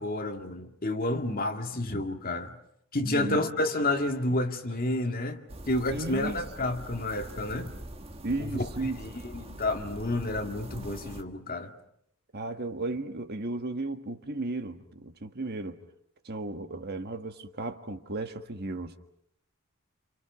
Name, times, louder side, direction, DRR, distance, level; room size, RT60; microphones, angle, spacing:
voice 1, 0.0-2.6 2.9-7.7 8.4-11.7, left 2 dB, 40° left, 1.9 m, -30 dB
voice 2, 3.0-3.4 5.9-6.4 8.2-9.0 12.3-15.8 16.2-18.9, right 2 dB, 45° right, 1.5 m, -34 dB
sound 1, 5.5-11.2, right 1 dB, 25° right, 1.4 m, -43 dB
29.0 x 28.0 x 6.0 m
head